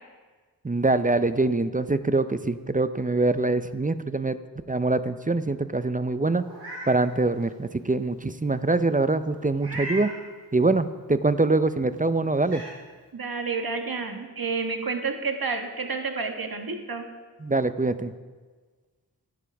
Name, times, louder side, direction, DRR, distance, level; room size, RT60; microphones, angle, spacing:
voice 1, 0.6-4.4 4.7-6.4 6.9-10.1 10.5-12.6 17.4-18.1, right 2 dB, 20° right, 12 dB, 0.5 m, -24 dB
Meow, 6.4-6.9 7.4-7.5 9.6-10.2 11.8-11.9 12.4-12.7, right 1 dB, 90° right, 3.9 m, -36 dB
voice 2, 13.1-17.0, right 4 dB, 60° right, 4 dB, 1.3 m, -30 dB
14.5 x 10.5 x 3.4 m, 1.4 s
cardioid pair, 40°, 40 cm